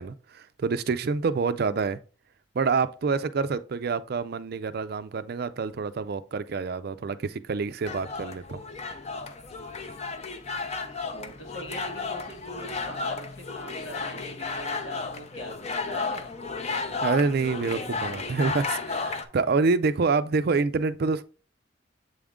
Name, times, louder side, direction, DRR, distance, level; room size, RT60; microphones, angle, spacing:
voice 1, 0.0-2.0 2.5-8.6 17.0-21.2, right 4 dB, 50° right, 0.4 m, -27 dB
sound 1, 7.8-19.3, left 4 dB, 35° left, 0.6 m, -33 dB
voice 2, 11.1-16.3, equal, 70° left, 1.9 m, -42 dB
7.7 x 3.6 x 3.6 m
head